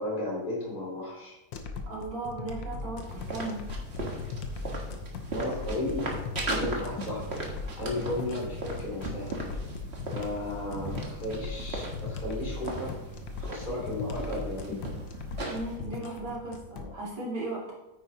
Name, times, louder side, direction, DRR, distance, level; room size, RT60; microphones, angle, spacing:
voice 1, 0.0-1.4 5.3-6.1 6.5-7.2 7.8-9.4 10.1-12.9 13.4-14.8, left 1 dB, 20° left, -4 dB, 2.9 m, -34 dB
sound 1, 1.5-16.9, left 4 dB, 65° left, 1.5 m, -39 dB
voice 2, 1.9-3.6 15.5-17.7, right 2 dB, 50° right, -5 dB, 3.1 m, -36 dB
sound 2, 3.0-15.8, right 1 dB, 35° right, 1.4 m, -37 dB
9.3 x 9.1 x 2.9 m, 1.0 s
omnidirectional pair, 2.4 m